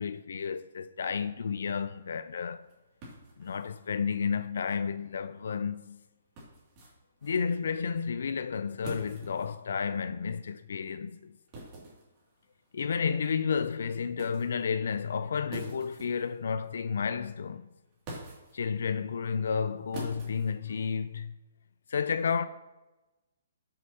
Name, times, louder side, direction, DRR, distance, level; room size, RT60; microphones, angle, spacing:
voice 1, 0.0-2.7 3.4-6.0 7.2-11.3 12.7-17.7 18.5-21.4 21.9-22.5, left 6 dB, 60° left, 0.3 m, -31 dB
sound 1, 1.7-21.3, right 1 dB, 20° right, 2.4 m, -49 dB
12.5 x 6.4 x 2.8 m
hypercardioid pair, 175°, 0 cm